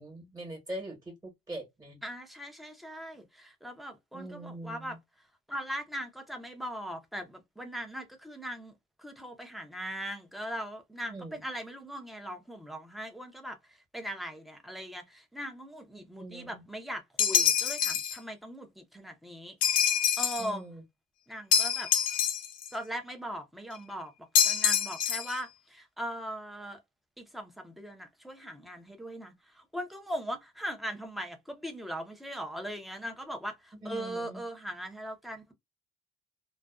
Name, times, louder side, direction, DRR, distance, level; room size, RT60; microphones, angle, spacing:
voice 1, 0.0-2.0 4.1-5.0 11.1-11.4 16.2-16.6 20.4-20.8 33.8-34.4, right 1 dB, 20° right, 1.1 m, -42 dB
voice 2, 2.0-5.0 5.5-8.7 9.0-19.6 20.2-20.6 21.3-21.9 22.7-24.1 24.4-26.8 27.2-35.5, equal, ahead, 0.6 m, -39 dB
sound 1, 17.2-18.2 19.6-20.5 21.5-22.7 24.3-25.4, left 8 dB, 55° left, 0.5 m, -26 dB
2.4 x 2.2 x 2.3 m
cardioid pair, 110°, 17 cm